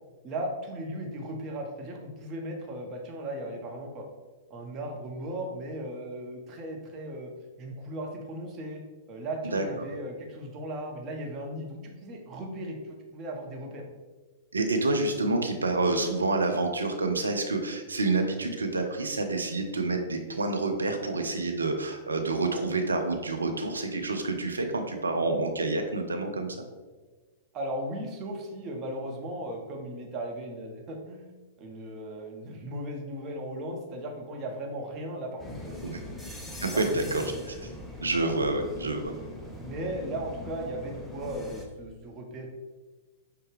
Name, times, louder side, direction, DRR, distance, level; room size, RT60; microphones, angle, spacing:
voice 1, 0.2-4.0 4.5-7.3 7.6-8.8 9.1-13.8 27.5-31.3 31.6-36.1 36.7-37.4 38.2-38.3 39.4-42.5, right 1 dB, 35° right, 0 dB, 0.9 m, -37 dB
voice 2, 14.5-26.5 35.8-36.0 36.6-37.2 38.0-39.1, right 2 dB, 85° right, 4 dB, 0.5 m, -28 dB
sound 1, 35.4-41.7, left 1 dB, 5° left, 0.7 m, -41 dB
5.6 x 2.2 x 3.4 m, 1.3 s
figure-of-eight pair, 105°, 0 cm